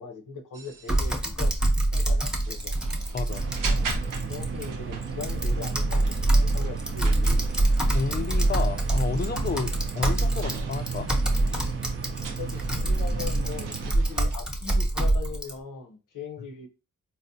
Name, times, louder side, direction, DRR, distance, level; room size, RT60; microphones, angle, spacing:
voice 1, 0.0-1.5 1.9-2.7 3.6-3.9 4.3-7.5 12.4-16.7, left 5 dB, 80° left, 0.8 m, -40 dB
sound 1, 0.5-14.3, right 4 dB, 90° right, 0.6 m, -42 dB
Typing, 0.9-15.5, right 1 dB, 5° right, 0.7 m, -25 dB
voice 2, 3.1-3.4 7.9-11.1, left 4 dB, 35° left, 0.4 m, -31 dB
sound 2, 3.3-13.9, right 6 dB, 40° right, 0.4 m, -35 dB
4.0 x 2.1 x 2.6 m
cardioid pair, 75°, 31 cm